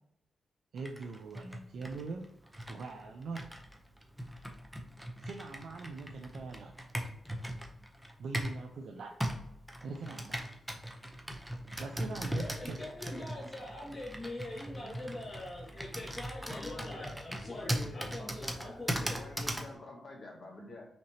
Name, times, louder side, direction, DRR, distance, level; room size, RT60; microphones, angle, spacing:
voice 1, 0.7-2.3 2.7-3.4 5.2-6.7 8.2-9.2 9.8-10.5 11.8-12.8, right 4 dB, 75° right, 3 dB, 0.4 m, -42 dB
Computer keyboard, 0.8-8.6 9.2-19.7, equal, 10° right, 0.7 m, -39 dB
voice 2, 12.3-19.2, left 1 dB, 20° left, -7 dB, 1.4 m, -43 dB
voice 3, 16.4-17.1 17.4-18.8 19.1-20.9, left 2 dB, 55° left, -3 dB, 1.5 m, -47 dB
5.7 x 2.9 x 2.8 m, 0.77 s
cardioid pair, 90°, 0 cm